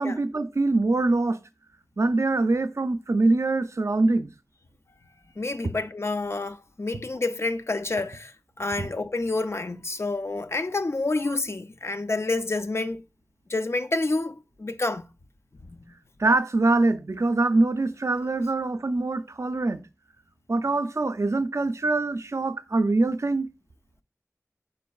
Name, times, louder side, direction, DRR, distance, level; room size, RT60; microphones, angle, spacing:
voice 1, 0.0-1.4 2.0-4.3 8.8-8.9 16.2-19.8 20.5-23.5, right 2 dB, 60° right, 0.4 m, -24 dB
voice 2, 5.4-8.3 8.6-13.0 13.5-15.0, left 2 dB, 55° left, 0.4 m, -28 dB
5.1 x 4.5 x 2.3 m
wide cardioid pair, 50°, 6 cm